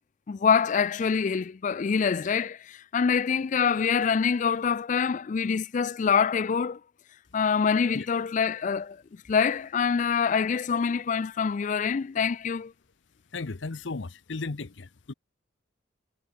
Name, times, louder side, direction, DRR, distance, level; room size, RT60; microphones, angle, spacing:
voice 1, 0.3-6.8 7.3-9.0 9.3-12.7, left 6 dB, 40° left, 0.3 m, -25 dB
voice 2, 13.3-15.1, left 3 dB, 65° left, 0.8 m, -35 dB
head